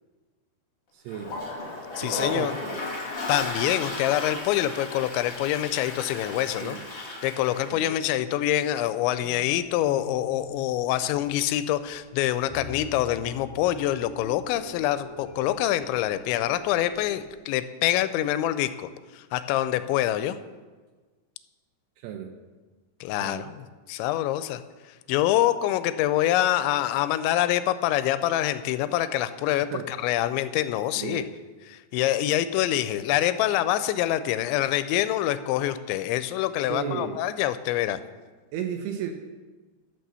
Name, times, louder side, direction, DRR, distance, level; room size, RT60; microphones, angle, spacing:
voice 1, 0.9-1.4 2.0-2.8 6.6-6.9 7.7-7.9 22.0-22.3 23.2-23.5 29.6-29.9 31.0-31.3 36.7-37.2 38.5-39.1, right 8 dB, 80° right, 5 dB, 2.5 m, -34 dB
Toilet flush, 1.1-7.8, left 2 dB, 40° left, 1.7 m, -35 dB
voice 2, 2.0-2.6 3.3-18.9 19.1-20.4 23.0-24.6 25.1-31.3 31.7-38.0, left 13 dB, 85° left, 13 dB, 2.8 m, -26 dB
sound 1, 9.2-17.4, left 1 dB, 15° left, 0.9 m, -45 dB
12.5 x 6.0 x 6.8 m, 1.3 s
omnidirectional pair, 5.2 m